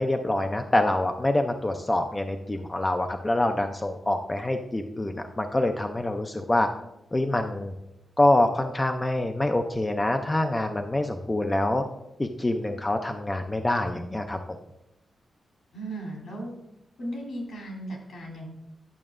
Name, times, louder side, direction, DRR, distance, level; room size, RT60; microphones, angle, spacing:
voice 1, 0.0-6.7 7.1-7.7 8.2-11.8 12.2-14.4, left 1 dB, 15° left, 5 dB, 0.4 m, -25 dB
voice 2, 15.7-16.5 17.0-18.5, right 1 dB, 75° left, -1 dB, 2.7 m, -36 dB
11.0 x 5.9 x 2.5 m, 0.90 s
wide cardioid pair, 130°, 0 cm